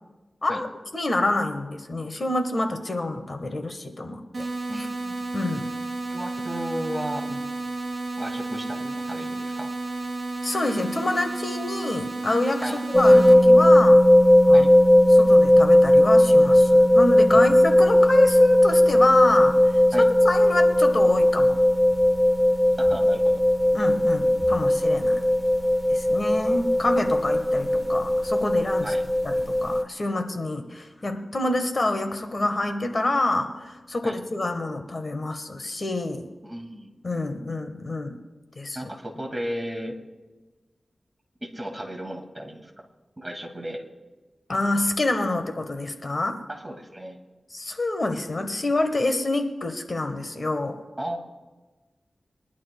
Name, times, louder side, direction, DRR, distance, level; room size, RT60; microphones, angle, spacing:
voice 1, 0.4-4.5 5.3-5.7 10.4-14.0 14.5-14.7 15.1-21.6 23.7-25.2 25.9-28.9 29.2-36.3 37.0-38.2 38.6-38.8 44.5-46.4 47.5-50.8, left 2 dB, 50° left, 6 dB, 1.2 m, -27 dB
sound 1, 4.3-13.3, right 2 dB, 65° right, 2.5 m, -32 dB
voice 2, 4.7-5.2 6.1-7.4 8.2-9.7 12.6-12.8 14.5-14.7 17.3-17.5 19.9-20.1 22.8-23.4 28.8-29.0 34.0-34.2 36.4-36.9 38.7-39.9 41.4-42.8 43.2-43.8 46.5-47.2 51.0-51.2, equal, 20° right, 1 dB, 2.1 m, -34 dB
sound 2, 12.9-29.8, left 1 dB, 20° left, 1.1 m, -18 dB
23.0 x 11.5 x 2.2 m, 1.2 s
wide cardioid pair, 65°, 0 cm